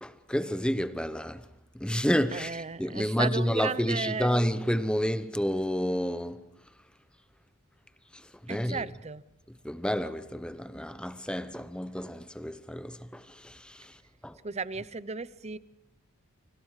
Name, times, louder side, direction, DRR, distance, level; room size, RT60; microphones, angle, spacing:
voice 1, 0.0-1.5 1.7-6.4 8.1-8.9 9.5-14.4, equal, 5° left, 0.8 m, -30 dB
voice 2, 2.3-4.3 8.5-9.2 14.4-15.6, right 4 dB, 30° right, 0.7 m, -34 dB
30.0 x 25.0 x 4.9 m
head